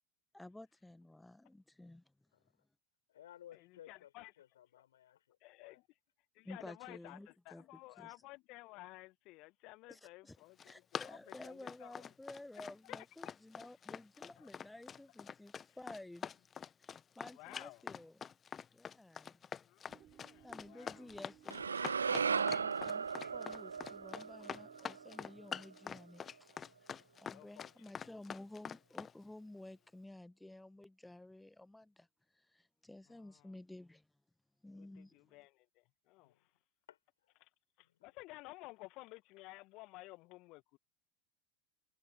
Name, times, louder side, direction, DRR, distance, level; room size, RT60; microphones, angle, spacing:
voice 1, 0.3-2.0 6.4-7.7 8.0-8.1 9.9-10.4 10.6-16.3 17.1-18.2 18.7-19.4 20.4-26.5 26.8-26.9 27.2-32.1 32.3-34.1 34.6-35.4, left 1 dB, 5° left, 1.3 m, -53 dB
voice 2, 2.3-2.6 3.1-5.8 18.9-19.1 36.2-36.5 36.9-37.4 37.8-38.1, left 11 dB, 70° left, 7.4 m, -59 dB
voice 3, 3.5-4.3 5.4-5.8 6.4-12.1 12.8-13.1 14.4-14.5 15.7-15.8 17.3-17.8 19.6-21.1 24.1-24.5 24.8-24.9 27.3-28.1 33.1-33.5 34.7-36.5 37.4-37.5 37.8-40.8, left 22 dB, 50° left, 1.7 m, -55 dB
Run, 10.4-29.1, left 7 dB, 25° left, 1.1 m, -45 dB
sound 1, 19.9-26.4, right 12 dB, 40° right, 3.9 m, -63 dB
sound 2, 21.5-25.7, right 6 dB, 80° right, 0.5 m, -37 dB
figure-of-eight pair, 80°, 0 cm